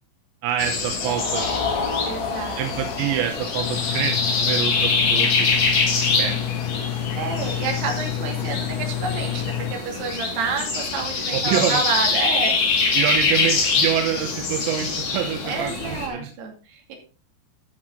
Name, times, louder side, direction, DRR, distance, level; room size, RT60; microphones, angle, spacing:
voice 1, 0.4-1.5 2.6-5.5 6.1-6.4 7.1-7.5 11.3-11.8 12.9-16.3, right 10 dB, 85° right, 4 dB, 3.3 m, -26 dB
sound 1, 0.6-16.1, left 4 dB, 45° left, 2.8 m, -24 dB
sound 2, 0.9-7.2, left 5 dB, 60° left, 3.2 m, -32 dB
voice 2, 2.1-2.6 6.0-6.4 7.2-12.6 12.8-13.0 15.4-17.0, right 4 dB, 70° right, 1 dB, 4.4 m, -29 dB
Engine, 3.6-9.7, left 12 dB, 85° left, 2.3 m, -29 dB
13.5 x 6.4 x 3.8 m, 0.36 s
omnidirectional pair, 5.1 m